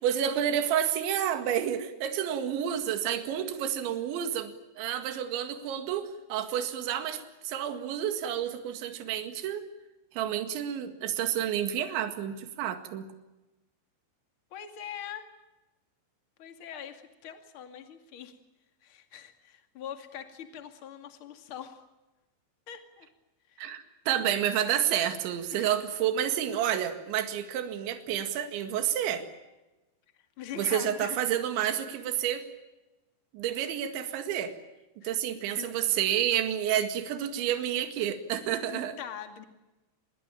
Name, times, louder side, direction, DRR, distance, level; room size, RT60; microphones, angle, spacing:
voice 1, 0.0-9.7 10.1-13.1 23.6-29.3 30.6-32.4 33.3-34.5 35.0-39.0, right 10 dB, 70° right, 7 dB, 4.1 m, -30 dB
voice 2, 14.5-15.3 16.4-18.4 18.8-21.8 22.7-23.1 23.5-23.6 25.5-25.7 30.4-31.2 35.0-35.2 35.6-35.7 38.7-39.4, left 9 dB, 40° left, 6 dB, 2.0 m, -42 dB
27.0 x 20.5 x 8.9 m, 1.0 s
omnidirectional pair, 5.7 m